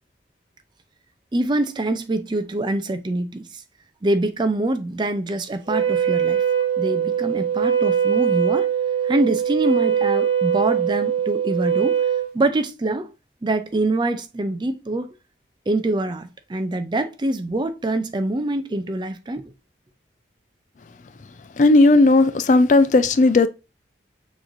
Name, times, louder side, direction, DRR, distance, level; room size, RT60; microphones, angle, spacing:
voice 1, 1.3-3.6 4.0-6.4 6.8-8.7 9.0-12.0 12.3-13.1 13.4-15.1 15.7-19.5, right 2 dB, 25° right, 0.4 m, -24 dB
Wind instrument woodwind instrument, 5.7-12.3, right 8 dB, 65° right, 1.0 m, -21 dB
voice 2, 21.6-23.5, left 2 dB, 45° left, 0.4 m, -15 dB
6.2 x 3.1 x 2.5 m
head